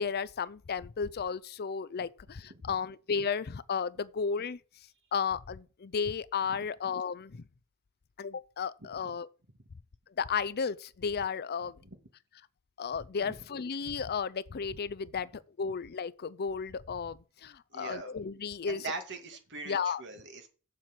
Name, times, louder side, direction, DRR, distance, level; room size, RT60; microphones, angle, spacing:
voice 1, 0.0-4.6 5.1-7.4 8.2-9.3 10.2-11.7 12.8-18.8 19.7-20.0, left 6 dB, 45° left, 0.5 m, -33 dB
voice 2, 8.8-9.2 11.6-12.0 13.2-13.4 17.7-18.2 18.7-20.5, right 3 dB, 55° right, 2.2 m, -42 dB
7.5 x 7.3 x 6.0 m
head